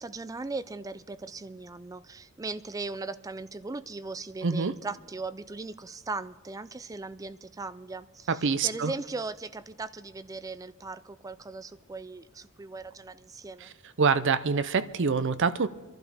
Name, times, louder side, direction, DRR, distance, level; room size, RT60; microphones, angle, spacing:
voice 1, 0.0-13.7, right 3 dB, 15° right, 14 dB, 0.3 m, -38 dB
voice 2, 4.4-4.7 8.3-8.9 13.6-13.7 14.0-15.7, right 5 dB, 55° right, 12 dB, 0.6 m, -25 dB
26.0 x 11.5 x 3.5 m, 1.3 s
head